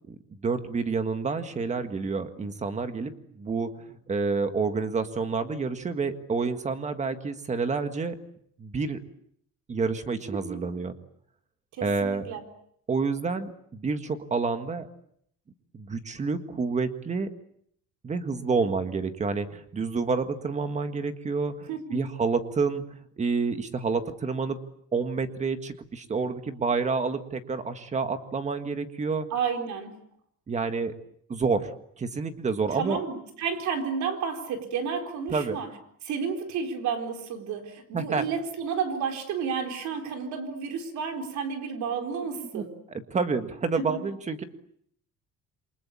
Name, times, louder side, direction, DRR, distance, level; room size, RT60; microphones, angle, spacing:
voice 1, 0.4-3.7 4.1-8.2 8.6-9.0 9.7-10.9 11.8-12.2 12.9-14.9 15.7-17.3 18.0-24.6 24.9-29.2 30.5-30.9 31.3-31.7 32.0-33.0 35.3-35.6 37.9-38.2 42.5-42.6 42.9-44.4, right 4 dB, 20° right, 9 dB, 1.7 m, -28 dB
voice 2, 10.3-10.6 11.8-12.4 21.7-22.0 29.3-29.9 32.7-35.7 36.0-42.7 43.8-43.9, right 6 dB, 65° right, 5 dB, 4.3 m, -31 dB
28.5 x 24.0 x 8.4 m, 0.69 s
cardioid pair, 180°, 31 cm